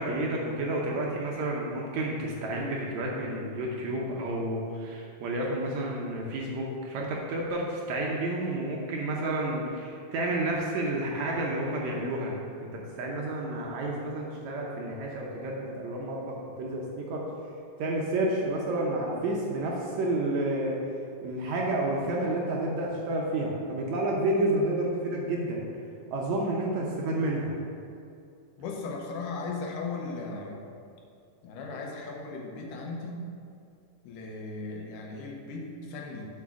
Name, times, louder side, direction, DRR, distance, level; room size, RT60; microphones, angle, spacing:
voice 1, 0.0-12.5 13.0-17.2 17.8-20.8 21.2-25.6 26.1-27.5, right 1 dB, 70° right, -2 dB, 1.9 m, -30 dB
voice 2, 28.6-30.6 31.4-33.2 34.0-36.3, left 3 dB, 80° left, 0 dB, 2.4 m, -37 dB
7.2 x 4.9 x 6.1 m, 2.5 s
omnidirectional pair, 3.8 m